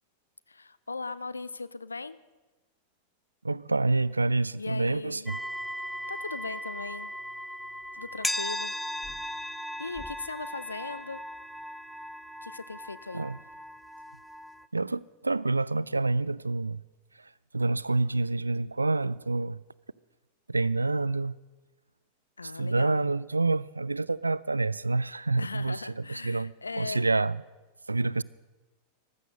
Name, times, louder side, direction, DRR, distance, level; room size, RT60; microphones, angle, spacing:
voice 1, 0.5-2.2 4.6-5.3 6.1-7.1 7.9-8.7 9.8-11.2 12.4-13.3 22.4-23.0 25.4-27.1, left 3 dB, 80° left, 0.5 m, -38 dB
voice 2, 3.4-5.4 13.1-13.4 14.7-16.8 17.5-19.6 20.5-21.4 22.6-26.5 26.8-27.3 27.9-28.2, right 3 dB, 80° right, 0.4 m, -27 dB
sound 1, 5.3-14.7, left 1 dB, 5° left, 0.4 m, -37 dB
15.0 x 12.5 x 6.5 m
figure-of-eight pair, 90°, 0 cm